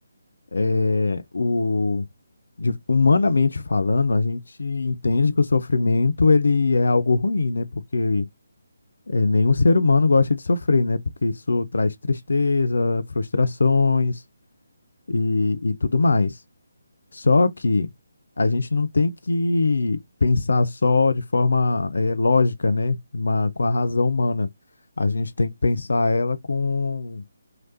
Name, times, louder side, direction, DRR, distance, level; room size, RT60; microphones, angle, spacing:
voice 1, 0.5-2.0 2.6-8.3 9.1-14.2 15.1-16.3 17.1-17.9 18.4-24.5 25.0-27.2, left 3 dB, 65° left, 0.4 m, -21 dB
3.1 x 2.9 x 2.8 m
figure-of-eight pair, 145°, 0 cm